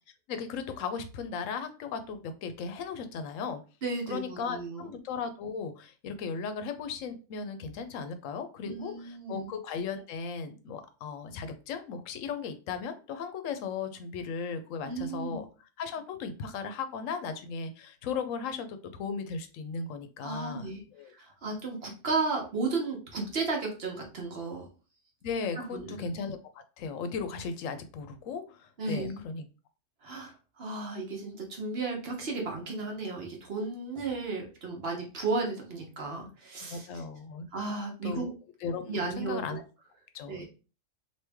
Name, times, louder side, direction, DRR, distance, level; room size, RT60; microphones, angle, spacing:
voice 1, 0.3-3.6 4.1-15.5 15.8-21.1 25.2-29.4 36.7-37.4 38.0-38.3 38.6-39.6 40.1-40.5, left 5 dB, 80° left, 9 dB, 1.0 m, -36 dB
voice 2, 3.8-4.9 8.6-9.5 14.8-15.4 20.2-20.8 21.1-24.7 25.7-26.1 28.8-29.2 30.0-36.9 37.5-38.3 38.9-39.6 40.3-40.5, right 3 dB, 55° right, 1 dB, 1.1 m, -34 dB
3.1 x 2.7 x 3.4 m, 0.34 s
omnidirectional pair, 1.3 m